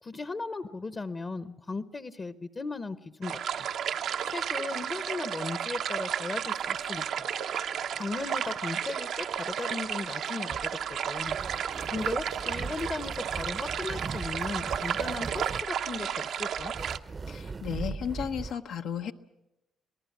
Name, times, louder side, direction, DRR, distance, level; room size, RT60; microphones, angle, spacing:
voice 1, 0.0-3.7 4.0-7.3 7.9-10.7 11.0-11.4 11.9-16.7, left 3 dB, 35° left, 12 dB, 0.9 m, -37 dB
sound 1, 3.2-17.0, right 8 dB, 75° right, 0.8 m, -33 dB
sound 2, 10.5-18.5, right 4 dB, 35° right, 0.7 m, -39 dB
voice 2, 17.3-19.1, left 8 dB, 80° left, 5 dB, 0.9 m, -34 dB
26.5 x 18.0 x 7.2 m, 0.92 s
cardioid pair, 90°, 0 cm